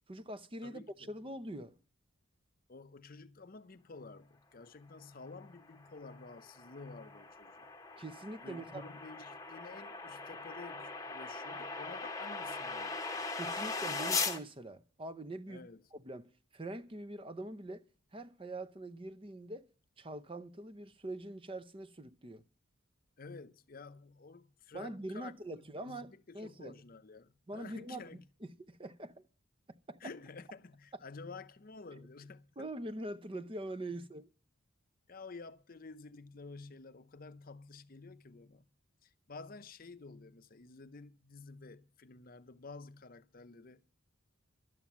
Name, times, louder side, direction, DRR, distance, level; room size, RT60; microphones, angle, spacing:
voice 1, 0.1-1.8 8.0-8.8 13.3-15.6 15.9-17.8 18.1-19.7 20.0-22.4 24.7-26.8 27.5-28.1 28.4-29.3 29.9-30.0 32.6-34.3, right 1 dB, 25° right, 0.7 m, -43 dB
voice 2, 0.6-1.1 2.7-7.7 8.4-13.3 15.5-15.8 23.2-28.3 30.0-32.7 35.1-38.7 39.0-43.8, left 3 dB, 45° left, 0.7 m, -51 dB
sound 1, 5.7-14.4, left 4 dB, 15° left, 1.0 m, -40 dB
12.5 x 8.9 x 7.2 m
head